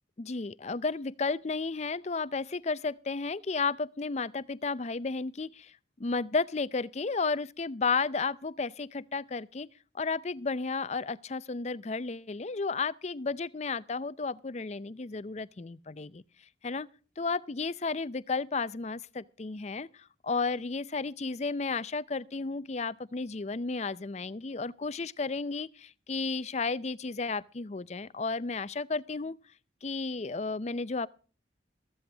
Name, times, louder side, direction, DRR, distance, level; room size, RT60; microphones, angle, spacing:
voice 1, 0.2-5.7 6.0-9.7 9.9-16.2 16.6-16.9 17.2-29.4 29.8-31.1, left 4 dB, 35° left, 0.5 m, -33 dB
14.5 x 14.0 x 3.4 m
head